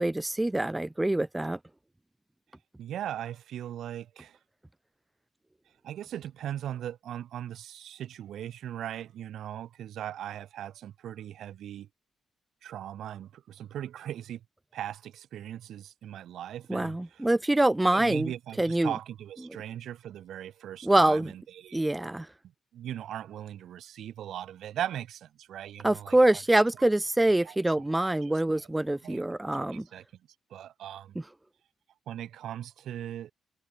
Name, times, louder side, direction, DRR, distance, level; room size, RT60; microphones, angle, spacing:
voice 1, 0.0-1.6 16.7-18.3 18.6-18.9 20.8-21.3 21.7-22.3 25.8-29.8, right 1 dB, 15° right, 1.2 m, -25 dB
voice 2, 2.8-4.4 5.8-11.9 12.6-14.4 14.7-17.3 17.9-21.8 22.7-26.2 27.3-27.6 28.0-28.7 29.0-29.2 29.6-30.0 30.5-31.2 32.1-33.3, right 11 dB, 75° right, 6.9 m, -39 dB
hypercardioid pair, 45°, 0 cm